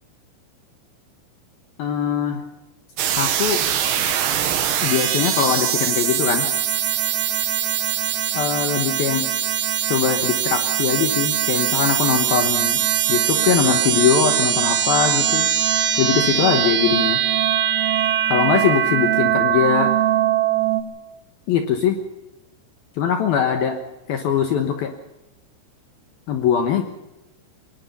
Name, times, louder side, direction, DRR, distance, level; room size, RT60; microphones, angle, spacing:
voice 1, 1.8-2.4 3.2-3.6 4.8-6.5 8.3-9.3 9.9-12.8 13.1-15.5 16.0-17.2 18.3-19.9 21.5-22.0 23.0-23.8 24.1-24.9 26.3-26.8, left 8 dB, 70° left, 6 dB, 2.5 m, -21 dB
sound 1, 3.0-20.8, right 10 dB, 70° right, 3.7 m, -21 dB
24.0 x 20.5 x 5.5 m, 0.97 s
omnidirectional pair, 5.7 m